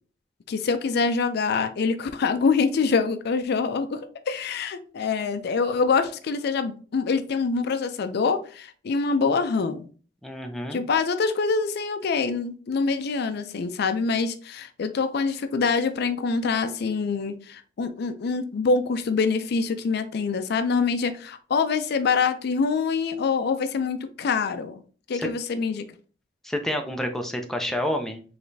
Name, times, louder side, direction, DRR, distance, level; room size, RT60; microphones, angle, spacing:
voice 1, 0.5-4.0 4.3-9.9 10.7-24.8 25.1-25.8, left 4 dB, 60° left, 10 dB, 0.4 m, -25 dB
voice 2, 10.2-10.8 25.1-25.3 26.4-28.2, left 1 dB, ahead, 3 dB, 0.5 m, -29 dB
4.7 x 3.2 x 2.6 m, 0.40 s
head